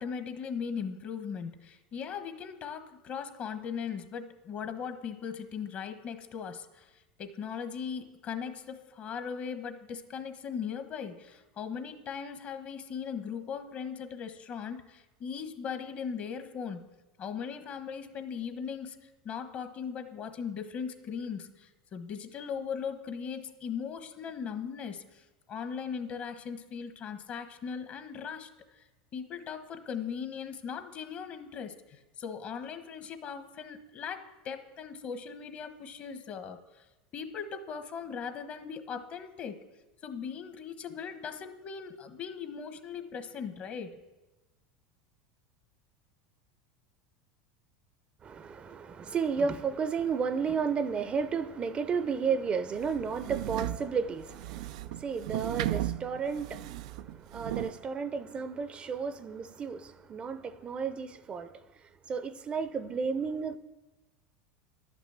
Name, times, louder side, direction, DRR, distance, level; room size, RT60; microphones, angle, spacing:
voice 1, 0.0-16.8 17.2-28.5 29.1-36.6 37.1-39.6 40.0-44.0, left 6 dB, 45° left, 1.2 m, -39 dB
voice 2, 48.2-61.5 62.1-63.6, right 6 dB, 30° right, 0.6 m, -33 dB
sound 1, 52.7-57.8, right 14 dB, 75° right, 0.3 m, -36 dB
11.5 x 6.1 x 8.2 m
hypercardioid pair, 100°, 4 cm